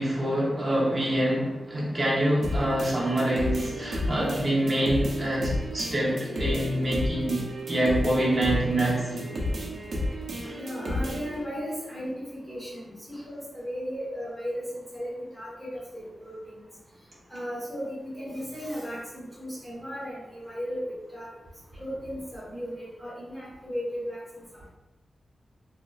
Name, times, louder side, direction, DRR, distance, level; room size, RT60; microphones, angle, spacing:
voice 1, 0.0-9.3 10.4-10.6, right 1 dB, 30° right, -5 dB, 0.8 m, -26 dB
sound 1, 2.4-11.4, left 1 dB, 70° right, 0.6 m, -32 dB
voice 2, 4.0-4.4 10.6-16.6 17.3-20.8 21.1-21.3 21.8-24.2, equal, 5° left, -9 dB, 1.3 m, -36 dB
2.9 x 2.5 x 2.3 m, 1.0 s
wide cardioid pair, 150°, 0 cm